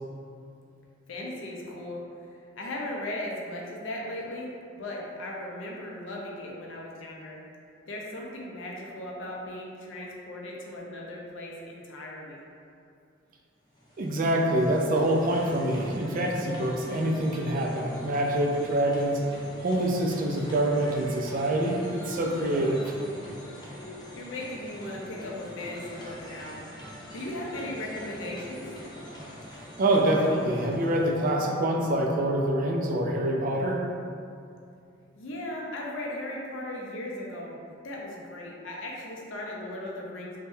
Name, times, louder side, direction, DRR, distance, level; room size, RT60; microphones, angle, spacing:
voice 1, 1.1-2.0 2.6-7.4 7.9-12.4 24.1-26.6 27.1-28.6 35.2-37.6 37.8-40.4, left 1 dB, 80° left, -2 dB, 0.5 m, -37 dB
sound 1, 13.6-31.7, left 1 dB, 20° left, 0.5 m, -44 dB
voice 2, 14.0-19.2 19.6-22.9 29.8-33.8, right 1 dB, 45° right, 1 dB, 0.3 m, -25 dB
3.4 x 2.1 x 2.6 m, 2.5 s
head